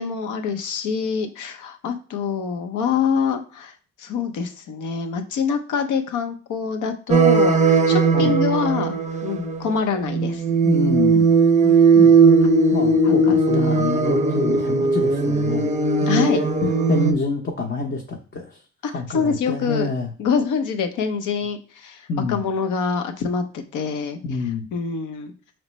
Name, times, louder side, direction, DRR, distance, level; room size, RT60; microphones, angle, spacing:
voice 1, 0.0-3.7 4.0-9.0 9.2-10.4 11.6-11.8 13.0-13.9 16.1-16.7 18.8-19.9 20.2-24.2 24.7-25.3, left 6 dB, 80° left, 7 dB, 0.8 m, -25 dB
sound 1, 7.1-9.8 10.1-17.1, right 4 dB, 25° right, 0.5 m, -18 dB
voice 2, 10.6-11.3 11.9-12.2 12.7-15.7 16.3-16.5 16.9-18.6 18.9-20.1 22.1-22.4 24.2-24.7, left 4 dB, 40° left, 2 dB, 0.7 m, -27 dB
5.1 x 3.1 x 3.1 m, 0.38 s
cardioid pair, 90°, 30 cm